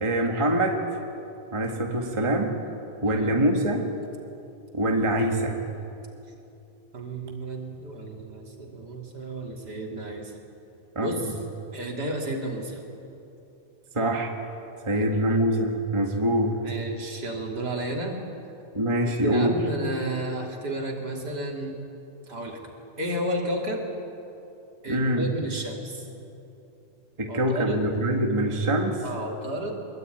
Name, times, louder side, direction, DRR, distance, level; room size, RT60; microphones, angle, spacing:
voice 1, 0.0-0.8 1.5-2.5 3.0-3.9 4.7-5.7 10.9-11.1 13.9-14.3 14.8-16.6 18.7-19.6 24.9-25.3 27.2-29.0, right 1 dB, 15° right, 1 dB, 1.0 m, -24 dB
voice 2, 3.1-3.4 6.9-10.3 11.0-11.3 11.7-12.8 15.0-15.1 16.6-18.2 19.0-21.8 22.3-22.6 23.0-23.9 24.8-26.0 27.3-27.8 29.0-29.8, right 1 dB, 30° right, 0 dB, 3.5 m, -32 dB
24.5 x 22.0 x 9.4 m, 2.8 s
omnidirectional pair, 3.6 m